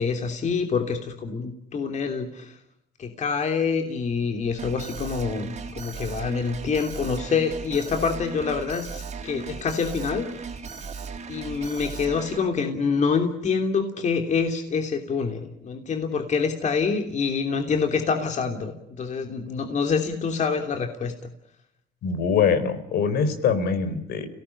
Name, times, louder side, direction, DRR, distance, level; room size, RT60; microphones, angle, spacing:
voice 1, 0.0-2.6 3.0-10.4 10.7-10.8 11.3-21.1, left 5 dB, 45° left, 5 dB, 3.1 m, -26 dB
Alarm, 4.6-12.4, right 5 dB, 40° right, 4.1 m, -37 dB
voice 2, 22.0-24.3, left 6 dB, 70° left, 10 dB, 4.7 m, -23 dB
30.0 x 18.0 x 9.9 m, 0.78 s
cardioid pair, 110°, 17 cm